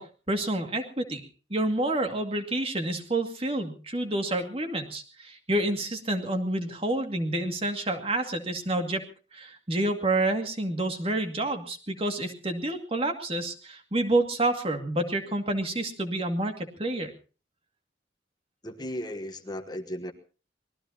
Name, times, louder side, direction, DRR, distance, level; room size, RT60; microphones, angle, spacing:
voice 1, 0.0-9.0 9.3-17.1, right 1 dB, 35° right, 5 dB, 2.3 m, -29 dB
voice 2, 18.6-20.1, equal, 25° left, 7 dB, 1.3 m, -35 dB
24.5 x 19.5 x 2.9 m, 0.37 s
head